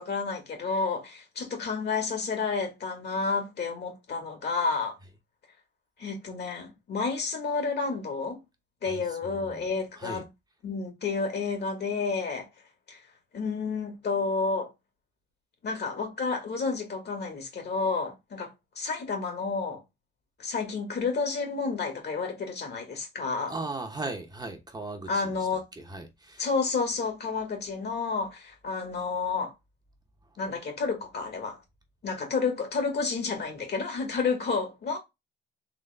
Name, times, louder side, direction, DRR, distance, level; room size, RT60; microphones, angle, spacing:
voice 1, 0.0-5.0 6.0-8.4 8.8-10.2 10.6-12.5 12.9-13.0 13.3-14.7 15.6-18.5 18.8-19.8 20.4-23.6 25.1-25.6 26.4-29.5 30.4-31.6 32.0-35.0, left 4 dB, 55° left, 2.0 m, -30 dB
voice 2, 8.9-9.7 10.0-10.2 23.5-26.5 30.2-30.3, right 2 dB, 20° right, 1.0 m, -38 dB
4.0 x 3.2 x 3.4 m
cardioid pair, 90°, 20 cm